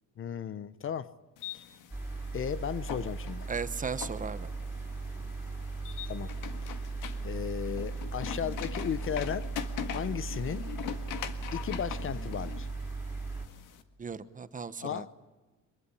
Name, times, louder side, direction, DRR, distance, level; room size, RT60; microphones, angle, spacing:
voice 1, 0.2-1.1 1.5-1.6 2.3-3.5 6.1-6.3 7.2-9.5 9.9-10.7 11.5-12.7 14.8-15.1, left 8 dB, 40° left, 0.8 m, -35 dB
sound 1, 1.4-13.8, left 10 dB, 80° left, 1.9 m, -43 dB
sound 2, 1.9-13.5, right 3 dB, 5° right, 5.2 m, -37 dB
voice 2, 3.5-4.5 14.0-15.1, right 5 dB, 25° right, 1.0 m, -36 dB
24.5 x 22.0 x 9.9 m
cardioid pair, 120°, 31 cm